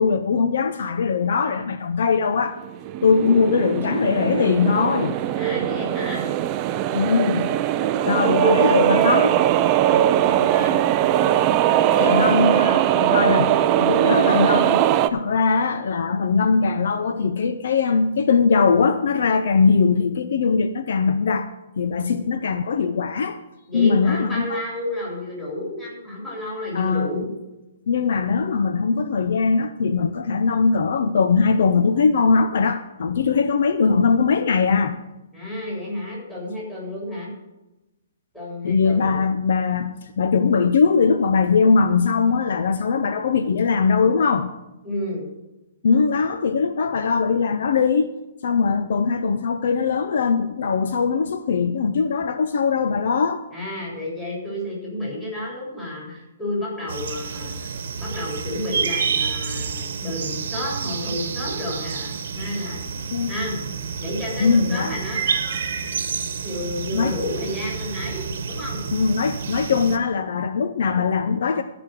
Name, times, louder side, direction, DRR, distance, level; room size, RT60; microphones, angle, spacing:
voice 1, 0.0-2.6 3.0-5.2 6.9-7.6 8.0-9.4 12.0-14.8 15.1-21.5 21.8-23.4 23.7-24.6 26.7-27.3 27.9-35.0 38.6-44.5 45.8-48.1 48.4-53.5 63.1-63.3 64.4-64.9 66.9-67.2 68.9-71.6, left 5 dB, 60° left, 0.6 m, -20 dB
sound 1, 2.6-15.1, right 11 dB, 20° right, 0.4 m, -20 dB
voice 2, 5.3-6.3 8.0-9.0 9.8-10.8 11.7-12.1 22.0-22.2 23.7-27.3 35.3-37.3 38.3-39.2 44.8-45.3 53.5-57.7 58.0-62.8 63.3-63.6 64.0-65.6 66.4-68.8, left 1 dB, 5° left, 3.6 m, -31 dB
sound 2, 56.9-70.0, right 6 dB, 60° right, 1.1 m, -29 dB
14.0 x 5.1 x 7.7 m
hypercardioid pair, 170°, 0 cm